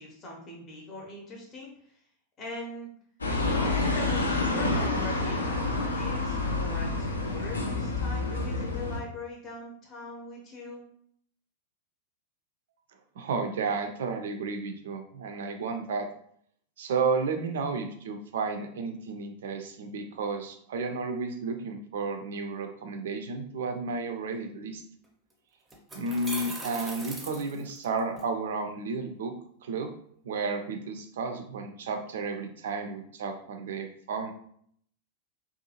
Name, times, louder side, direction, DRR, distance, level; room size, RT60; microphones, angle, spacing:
voice 1, 0.0-1.9 2.4-2.9 3.4-10.8, left 1 dB, 30° left, -1 dB, 0.7 m, -41 dB
sound 1, 3.2-9.0, left 2 dB, 75° left, 0.4 m, -28 dB
voice 2, 13.2-16.1 16.8-24.8 25.9-29.3 29.6-29.9 30.2-34.3, right 4 dB, 60° right, 6 dB, 0.4 m, -32 dB
sound 2, 25.0-25.1 25.7-28.2, right 1 dB, 10° right, 0.6 m, -39 dB
2.6 x 2.3 x 2.7 m, 0.65 s
figure-of-eight pair, 90°, 0 cm